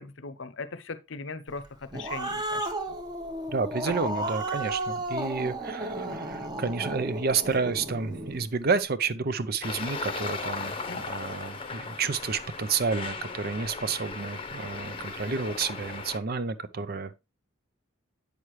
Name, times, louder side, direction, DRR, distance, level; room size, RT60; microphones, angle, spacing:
voice 1, 0.0-1.6 1.9-2.7 10.9-11.0, left 4 dB, 60° left, 0.8 m, -38 dB
Growling, 1.6-8.4, right 1 dB, 20° right, 1.0 m, -33 dB
voice 2, 3.5-17.2, right 5 dB, 45° right, 0.6 m, -30 dB
Traffic noise roadway noise, 9.6-16.2, left 4 dB, 25° left, 0.8 m, -37 dB
8.4 x 6.3 x 3.1 m
head